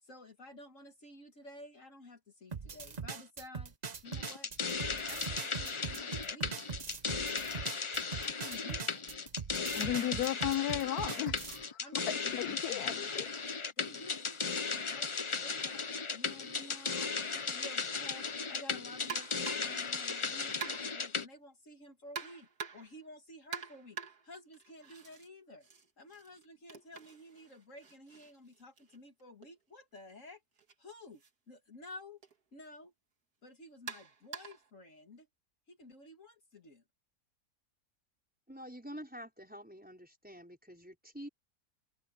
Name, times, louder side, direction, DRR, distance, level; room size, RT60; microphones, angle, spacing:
voice 1, 0.0-3.7 4.0-4.5 5.0-6.8 8.2-9.0 9.5-10.0 11.8-13.3 13.8-15.9 16.1-22.5 22.7-24.0 24.2-25.7 26.0-30.4 30.8-31.2 31.5-32.2 32.5-32.9 33.4-35.3 35.7-36.8, left 1 dB, 55° left, 2.4 m, -52 dB
sound 1, 2.5-11.6, right 5 dB, 35° right, 0.8 m, -41 dB
sound 2, 4.1-21.3, left 4 dB, 35° left, 0.5 m, -36 dB
voice 2, 9.8-13.3, left 12 dB, 80° left, 1.2 m, -35 dB
sound 3, 19.1-19.8 20.6-21.1 22.1-23.0 23.5-25.3 25.6-29.5 30.6-30.7 31.2-31.3 32.2-32.4 33.9-34.7, right 6 dB, 70° right, 2.6 m, -46 dB
voice 3, 38.5-41.3, equal, 5° right, 5.5 m, -47 dB
omnidirectional pair, 1.6 m